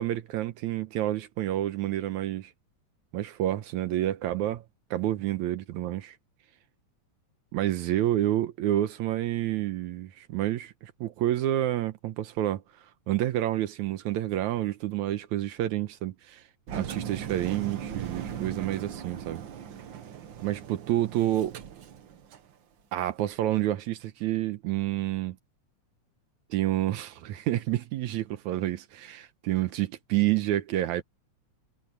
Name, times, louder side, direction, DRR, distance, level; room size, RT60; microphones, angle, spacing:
voice 1, 0.0-2.5 3.1-4.6 4.9-6.2 7.5-12.6 13.1-16.4 16.7-19.4 20.4-21.5 22.9-25.4 26.5-31.0, right 13 dB, 80° right, 2.3 m, -29 dB
Engine, 16.7-22.5, right 8 dB, 60° right, 1.3 m, -38 dB
omnidirectional pair, 3.4 m